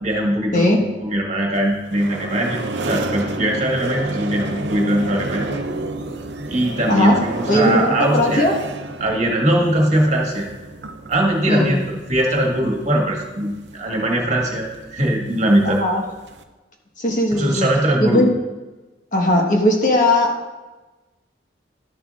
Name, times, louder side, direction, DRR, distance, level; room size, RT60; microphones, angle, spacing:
voice 1, 0.0-5.4 6.5-8.5 9.0-10.5 11.1-11.8 12.1-15.8 17.3-18.3, right 1 dB, 40° right, -1 dB, 1.6 m, -20 dB
sound 1, 1.5-16.4, right 2 dB, 70° right, 0.6 m, -31 dB
voice 2, 7.5-8.5 11.5-11.7 15.6-16.0 17.0-17.7 18.0-18.3 19.1-20.5, left 1 dB, 45° left, 0 dB, 1.3 m, -18 dB
12.5 x 7.5 x 2.5 m, 1.2 s
head